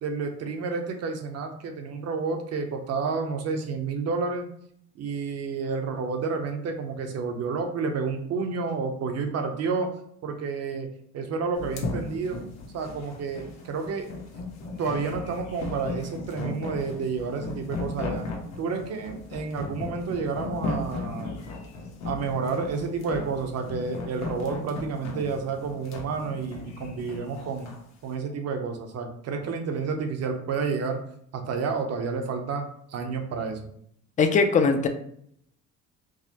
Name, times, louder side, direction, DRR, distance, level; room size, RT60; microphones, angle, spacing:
voice 1, 0.0-4.5 4.9-9.9 10.2-10.9 11.1-12.4 12.7-14.1 14.8-18.3 18.6-21.4 22.0-27.7 28.0-31.0 31.3-33.7, right 4 dB, 55° right, 5 dB, 0.7 m, -30 dB
sound 1, 11.6-27.8, left 3 dB, 65° left, 0.9 m, -36 dB
voice 2, 34.2-34.9, left 4 dB, 25° left, 7 dB, 0.4 m, -20 dB
4.7 x 2.0 x 2.8 m, 0.68 s
cardioid pair, 115°, 30 cm